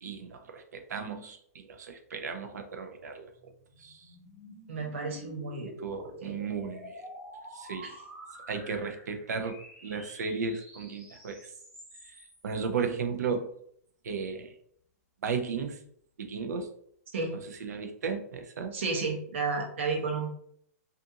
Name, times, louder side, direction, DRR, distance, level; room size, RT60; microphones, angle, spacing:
voice 1, 0.0-3.5 3.8-4.1 5.8-7.0 7.5-7.9 8.5-11.5 12.0-13.5 14.0-14.5 15.2-15.8 16.2-16.7 17.6-18.7, right 5 dB, 80° right, 6 dB, 0.5 m, -35 dB
sound 1, 2.8-12.5, equal, ahead, 0.9 m, -48 dB
voice 2, 4.7-5.7 6.2-6.4 7.8-8.0 17.1-17.4 18.7-20.3, right 4 dB, 45° right, 1 dB, 0.7 m, -32 dB
2.5 x 2.4 x 2.7 m, 0.67 s
hypercardioid pair, 180°, 9 cm